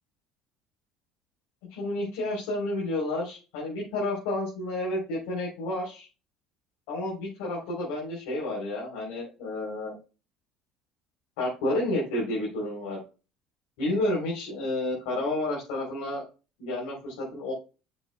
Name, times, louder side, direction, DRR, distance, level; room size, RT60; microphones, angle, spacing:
voice 1, 1.7-6.1 6.9-9.9 11.4-13.0 13.8-16.2 16.6-17.5, left 1 dB, 70° left, -5 dB, 3.8 m, -30 dB
11.0 x 7.0 x 2.3 m, 0.32 s
hypercardioid pair, 65°, 0 cm